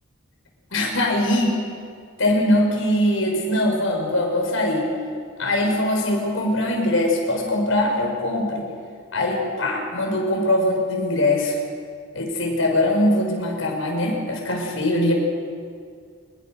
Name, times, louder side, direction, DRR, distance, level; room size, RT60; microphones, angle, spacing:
voice 1, 0.7-1.6 2.2-4.9 5.4-8.7 9.1-11.6 12.1-15.1, left 1 dB, 80° left, 1 dB, 5.8 m, -22 dB
26.5 x 21.5 x 6.5 m, 2.1 s
head